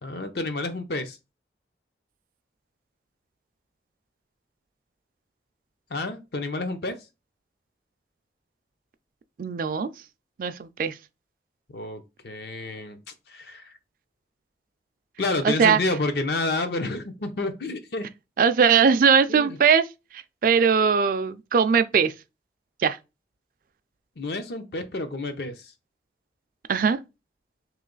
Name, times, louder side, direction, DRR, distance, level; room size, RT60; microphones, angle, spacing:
voice 1, 0.0-1.2 5.9-7.1 11.7-13.0 13.3-13.7 15.2-18.1 19.3-19.6 24.2-25.7, left 2 dB, 60° left, 0.6 m, -29 dB
voice 2, 9.4-9.9 10.4-11.0 15.4-15.8 18.4-19.8 20.1-22.1 22.8-23.0 26.7-27.0, right 6 dB, 50° right, 0.3 m, -20 dB
3.1 x 3.0 x 3.8 m
head